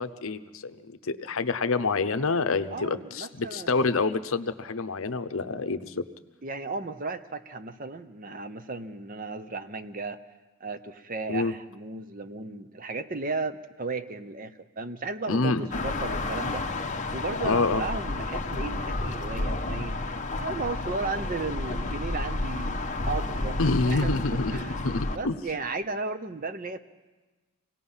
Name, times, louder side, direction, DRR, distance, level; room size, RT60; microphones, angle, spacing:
voice 1, 0.0-6.0 11.3-11.5 15.3-15.6 17.4-17.8 23.6-25.4, left 3 dB, 65° left, 11 dB, 0.7 m, -27 dB
voice 2, 2.7-4.0 6.4-10.2 10.6-16.6 17.1-20.0 20.4-26.8, right 3 dB, 40° right, 11 dB, 0.7 m, -35 dB
sound 1, 15.7-25.2, left 2 dB, 35° left, 0.9 m, -31 dB
26.0 x 18.0 x 5.6 m, 1.2 s
head